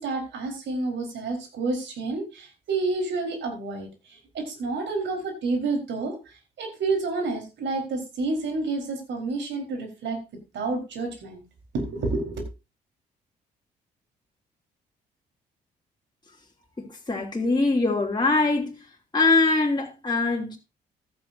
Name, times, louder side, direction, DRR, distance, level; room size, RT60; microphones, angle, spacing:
voice 1, 0.0-6.1 6.6-10.2 10.5-11.4 11.7-12.4, right 3 dB, 60° right, 4.5 m, -29 dB
voice 2, 16.8-18.8 19.1-20.6, left 3 dB, 20° left, 3.0 m, -23 dB
14.5 x 12.5 x 2.7 m
hypercardioid pair, 45°, 21 cm